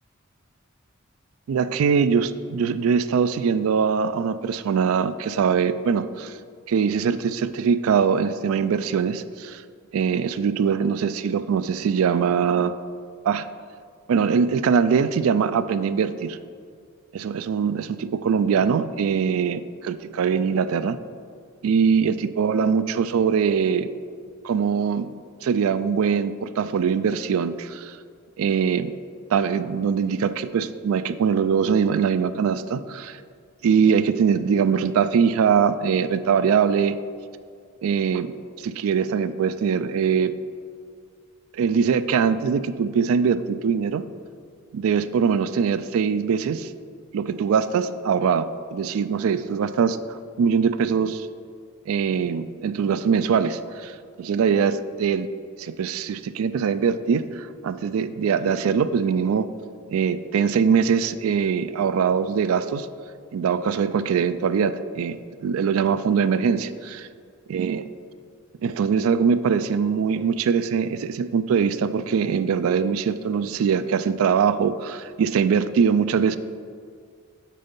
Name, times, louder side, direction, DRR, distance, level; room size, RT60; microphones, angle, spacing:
voice 1, 1.5-6.4 6.7-9.6 9.9-12.7 13.2-13.5 14.1-16.4 17.1-21.0 21.6-23.9 24.4-25.1 25.4-28.0 28.4-28.9 29.3-33.2 33.6-37.0 37.8-38.3 38.6-40.3 41.5-44.0 44.7-46.7 47.1-51.3 51.9-55.3 55.6-59.5 59.9-62.9 63.3-67.1 67.5-67.8 68.6-76.4, right 6 dB, 75° right, 13 dB, 0.3 m, -22 dB
7.5 x 4.4 x 5.3 m, 2.2 s
head